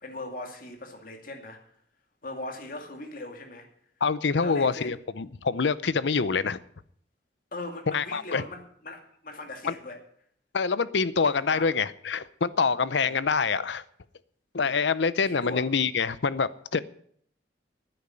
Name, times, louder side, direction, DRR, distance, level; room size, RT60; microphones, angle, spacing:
voice 1, 0.0-1.6 2.2-3.7 4.4-4.9 7.5-10.0 11.5-11.7 13.0-13.2 14.6-14.8 15.2-15.6, left 2 dB, 50° left, 2.5 m, -39 dB
voice 2, 4.0-6.6 7.9-8.4 9.6-9.7 10.5-13.8 14.5-16.8, left 5 dB, 70° left, 0.7 m, -26 dB
10.0 x 8.7 x 9.7 m
head